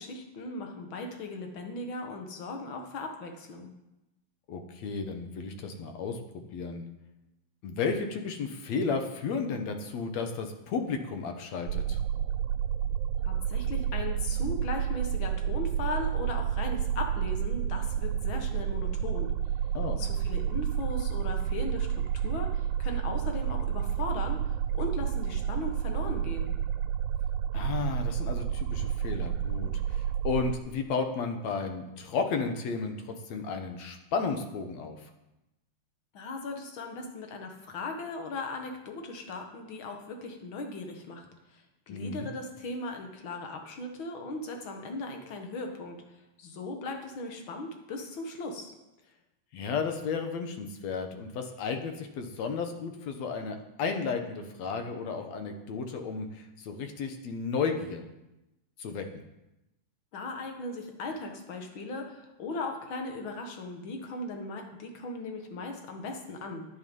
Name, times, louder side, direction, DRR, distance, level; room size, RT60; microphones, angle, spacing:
voice 1, 0.0-3.7 13.2-19.3 20.0-21.9 22.1-24.4 24.7-26.5 36.1-41.3 41.5-46.0 46.4-48.7 60.1-66.7, left 2 dB, 50° left, 4 dB, 2.0 m, -38 dB
voice 2, 4.5-6.2 6.5-6.9 7.6-12.0 19.7-20.0 27.5-35.1 41.9-42.3 49.5-58.0 58.8-59.2, left 5 dB, 65° left, 6 dB, 2.3 m, -33 dB
sound 1, 11.7-30.6, right 9 dB, 85° right, 2.0 m, -30 dB
10.5 x 10.0 x 5.4 m, 0.93 s
omnidirectional pair, 3.4 m